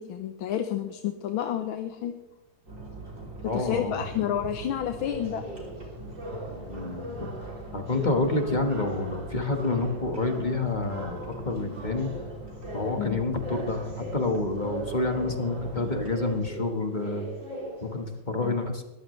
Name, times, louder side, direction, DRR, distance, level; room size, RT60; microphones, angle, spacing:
voice 1, 0.0-2.1 3.5-5.4 13.0-13.2 18.4-18.5, left 10 dB, 90° left, 7 dB, 1.7 m, -30 dB
sound 1, 2.7-16.5, right 2 dB, 40° right, 3.6 m, -42 dB
voice 2, 3.4-4.0 6.7-7.3 7.7-12.1 12.7-17.2 17.8-18.8, left 3 dB, 25° left, 4 dB, 1.5 m, -28 dB
sound 2, 5.0-18.1, equal, 65° right, 3.9 m, -40 dB
21.0 x 15.0 x 3.2 m, 1.0 s
omnidirectional pair, 2.2 m